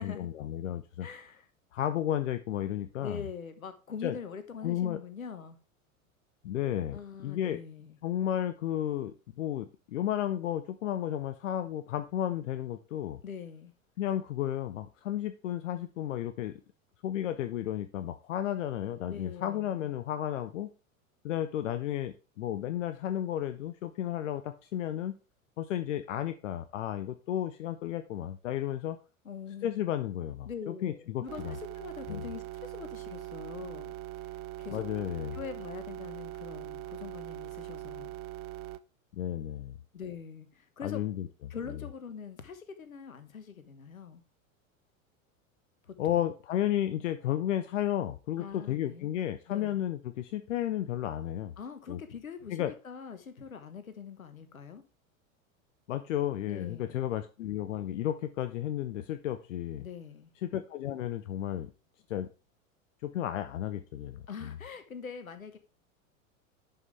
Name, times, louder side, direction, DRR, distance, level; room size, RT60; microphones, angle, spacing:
voice 1, 0.0-1.1 1.7-3.2 4.0-4.2 4.6-5.0 6.4-7.6 8.0-13.2 14.0-16.5 17.0-20.7 21.2-25.2 25.6-29.0 29.6-31.6 32.1-32.2 34.7-35.4 39.1-39.8 40.8-41.3 46.0-51.5 51.9-52.0 52.5-52.7 55.9-59.8 60.4-61.7 62.1-62.3 63.0-64.5, left 11 dB, 65° left, 0.7 m, -33 dB
voice 2, 1.0-1.5 3.0-5.6 6.9-8.0 13.2-13.7 19.1-19.9 29.2-29.9 30.5-34.0 34.2-34.9 35.3-38.1 39.9-41.0 41.5-44.2 45.8-46.3 48.4-49.1 49.5-49.8 51.6-54.8 56.5-57.1 59.8-60.3 64.3-65.6, left 6 dB, 80° left, 1.3 m, -43 dB
sound 1, 31.3-38.8, right 14 dB, 35° right, 0.5 m, -41 dB
11.0 x 5.6 x 3.4 m
figure-of-eight pair, 85°, 41 cm